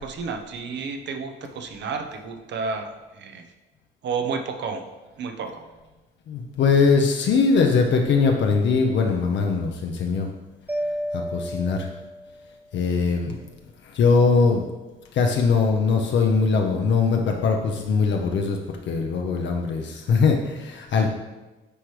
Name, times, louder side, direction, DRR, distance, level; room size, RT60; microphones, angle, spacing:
voice 1, 0.0-3.5 4.0-4.8 5.2-5.6 20.9-21.1, right 5 dB, 65° right, 5 dB, 0.8 m, -31 dB
voice 2, 6.3-10.3 11.1-11.9 12.7-13.4 13.8-14.6 15.1-18.6 18.9-21.1, left 4 dB, 65° left, 2 dB, 0.7 m, -21 dB
Mallet percussion, 10.7-12.7, equal, 10° right, 0.5 m, -32 dB
9.7 x 3.3 x 3.2 m, 1.1 s
cardioid pair, 90°, 20 cm